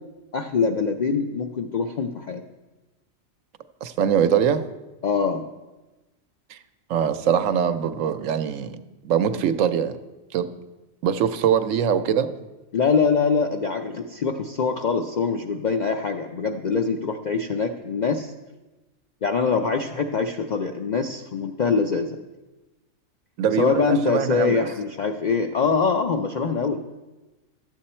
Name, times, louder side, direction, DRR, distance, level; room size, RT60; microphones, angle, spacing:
voice 1, 0.3-2.4 5.0-5.5 12.7-18.3 19.2-22.2 23.6-26.8, left 5 dB, 65° left, 4 dB, 0.4 m, -24 dB
voice 2, 3.8-4.6 6.5-6.6 6.9-10.0 10.3-10.5 11.0-12.3 23.4-24.7, right 8 dB, 75° right, 10 dB, 1.0 m, -22 dB
12.5 x 8.0 x 4.3 m, 1.1 s
omnidirectional pair, 1.4 m